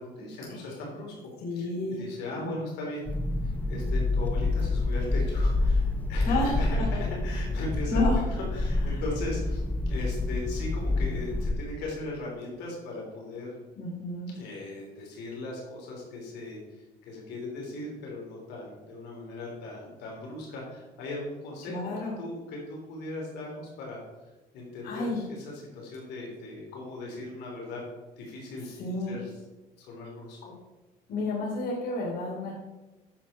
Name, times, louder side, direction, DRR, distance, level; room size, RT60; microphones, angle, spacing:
voice 1, 0.0-3.1 3.4-13.6 14.3-27.8 28.2-29.3 29.8-30.5, left 2 dB, 85° left, -2 dB, 3.4 m, -38 dB
voice 2, 1.4-2.0 2.4-2.7 6.2-6.9 7.9-8.2 8.9-9.0 13.8-14.3 21.7-22.1 24.8-25.2 28.8-29.2 31.1-32.5, left 2 dB, 65° left, -4 dB, 3.0 m, -31 dB
sound 1, 3.1-11.5, left 2 dB, 10° left, 0.9 m, -27 dB
9.7 x 6.8 x 4.3 m, 1.1 s
cardioid pair, 110°, 17 cm